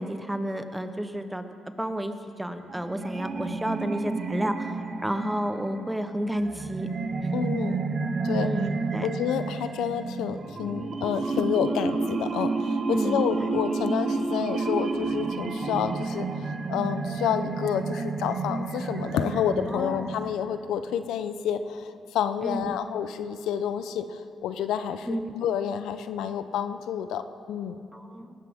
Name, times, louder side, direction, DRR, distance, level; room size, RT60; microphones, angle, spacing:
voice 1, 0.0-1.4 1.8-4.8 5.0-6.9 7.2-7.3 8.4-9.1 12.9-13.5 19.7-20.1 22.4-22.8 25.1-25.3 27.9-28.3, right 1 dB, 5° right, 8 dB, 0.9 m, -31 dB
sound 1, 2.6-20.6, right 4 dB, 45° right, 1.0 m, -30 dB
voice 2, 7.3-7.8 8.2-8.5 9.0-27.8, left 8 dB, 85° left, 10 dB, 0.6 m, -29 dB
19.0 x 14.0 x 3.6 m, 2.6 s
cardioid pair, 90°, 0 cm